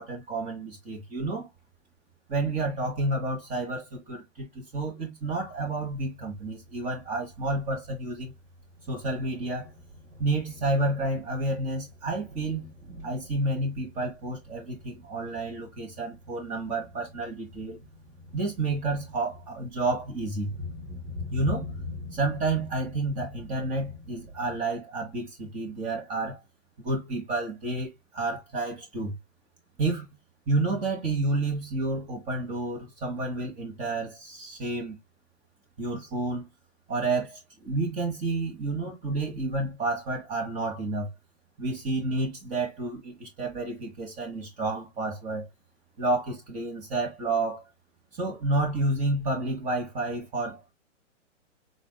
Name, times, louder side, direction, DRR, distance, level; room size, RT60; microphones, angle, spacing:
voice 1, 0.0-1.5 2.3-8.3 8.9-9.7 10.2-12.6 13.0-17.8 18.3-20.5 21.3-21.7 22.1-26.4 26.8-29.1 29.8-30.1 30.5-35.0 35.8-36.5 36.9-41.1 41.6-45.5 46.0-47.6 48.1-50.7, right 2 dB, 20° right, 1.3 m, -30 dB
Thunder, 5.2-24.6, left 3 dB, 75° right, 3.0 m, -44 dB
3.9 x 3.3 x 2.2 m
hypercardioid pair, 135°, 38 cm